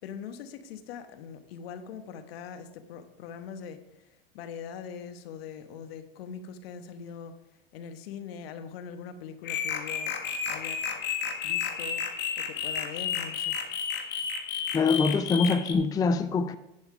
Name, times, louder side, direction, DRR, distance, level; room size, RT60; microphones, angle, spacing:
voice 1, 0.0-3.8 4.3-7.3 7.7-10.1 10.5-10.8 11.4-12.0 12.4-13.5, left 7 dB, 70° left, 1.1 m, -42 dB
sound 1, 9.4-15.7, left 7 dB, 35° left, 1.5 m, -32 dB
voice 2, 14.7-16.5, left 4 dB, 10° left, 0.4 m, -24 dB
11.0 x 5.4 x 5.0 m
hypercardioid pair, 100°, 31 cm